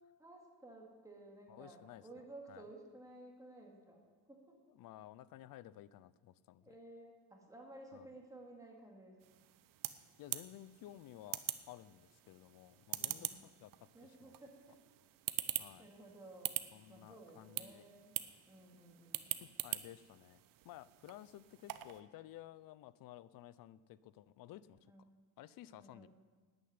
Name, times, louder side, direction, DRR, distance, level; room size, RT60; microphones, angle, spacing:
voice 1, 0.2-4.6 6.6-9.2 12.9-13.4 13.9-14.7 15.8-16.6 16.9-18.2 18.5-19.3 24.9-25.2 25.7-26.1, right 2 dB, 10° right, 0 dB, 2.3 m, -55 dB
voice 2, 1.5-2.1 2.5-2.6 4.7-6.8 7.9-8.1 10.2-14.4 15.6-15.9 16.7-17.8 19.4-24.8 25.4-26.1, left 13 dB, 65° left, 18 dB, 0.6 m, -55 dB
sound 1, 9.2-22.0, right 14 dB, 60° right, 0.7 m, -45 dB
10.5 x 9.0 x 9.5 m, 1.4 s
cardioid pair, 150°, 37 cm